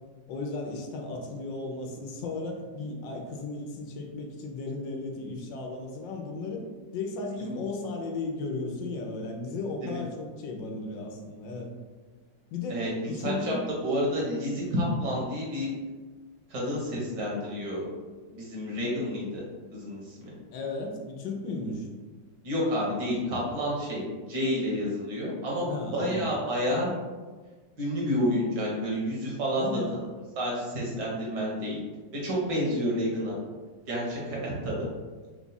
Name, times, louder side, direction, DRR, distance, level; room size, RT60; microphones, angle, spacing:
voice 1, 0.3-6.6 6.9-11.7 12.5-13.6 20.5-21.9 25.7-26.3 29.6-30.0, left 3 dB, 80° left, 2 dB, 1.4 m, -35 dB
voice 2, 12.7-13.5 13.8-15.7 16.5-17.9 18.3-19.4 19.7-20.3 22.4-27.0 27.8-29.8 30.4-31.8 32.2-33.4 33.9-34.9, equal, 70° right, -4 dB, 1.8 m, -29 dB
4.3 x 2.3 x 4.0 m, 1.4 s
omnidirectional pair, 2.0 m